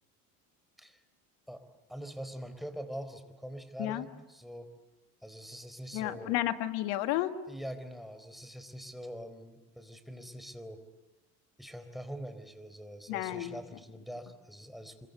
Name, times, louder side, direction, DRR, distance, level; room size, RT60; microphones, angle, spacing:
voice 1, 1.9-4.7 5.2-6.3 7.5-10.8 11.6-15.1, equal, ahead, 10 dB, 4.0 m, -44 dB
voice 2, 5.9-7.3 13.1-13.6, left 14 dB, 85° left, 9 dB, 1.8 m, -32 dB
26.5 x 24.0 x 8.1 m, 1.0 s
supercardioid pair, 85°, 42 cm